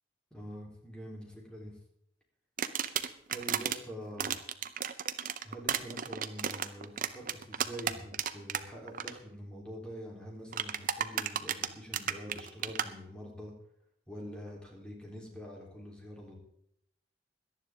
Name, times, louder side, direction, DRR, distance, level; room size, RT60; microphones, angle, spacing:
voice 1, 0.3-1.7 3.3-4.3 5.4-13.5 14.1-16.4, equal, 5° left, -2 dB, 3.7 m, -45 dB
sound 1, 2.6-3.8 4.2-8.6 8.9-9.1 10.5-12.9, right 8 dB, 50° right, 0.7 m, -33 dB
18.0 x 11.5 x 3.7 m, 0.70 s
head